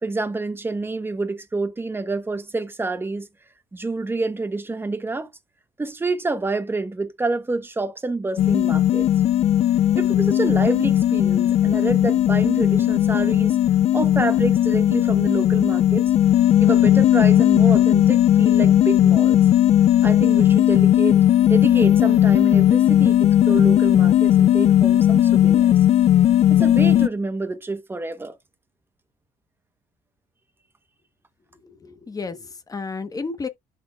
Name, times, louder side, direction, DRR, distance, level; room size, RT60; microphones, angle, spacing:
voice 1, 0.0-3.3 3.7-5.3 5.8-9.1 9.9-13.6 13.9-16.1 16.6-19.4 20.0-21.2 21.5-25.7 26.5-28.4, right 3 dB, 15° right, 1.0 m, -27 dB
sound 1, 8.4-27.1, left 11 dB, 45° left, 0.4 m, -17 dB
voice 2, 31.5-33.5, left 4 dB, 25° left, 1.1 m, -32 dB
11.5 x 4.3 x 2.4 m
cardioid pair, 125°, 16 cm